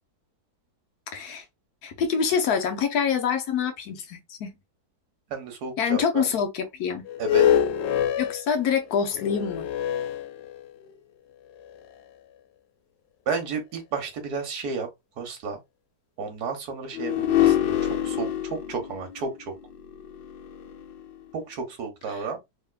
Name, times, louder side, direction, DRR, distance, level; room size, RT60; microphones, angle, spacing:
voice 1, 1.1-1.4 1.8-4.5 5.8-7.0 8.2-9.7 22.1-22.2, left 7 dB, 65° left, 1.2 m, -26 dB
voice 2, 5.3-6.3 7.2-7.5 13.3-14.9 15.2-15.6 16.2-19.5 21.3-22.4, right 5 dB, 65° right, 1.5 m, -32 dB
sound 1, 7.1-10.9 11.6-11.7 16.9-21.2, left 10 dB, 90° left, 1.2 m, -26 dB
3.5 x 3.2 x 2.3 m
omnidirectional pair, 1.8 m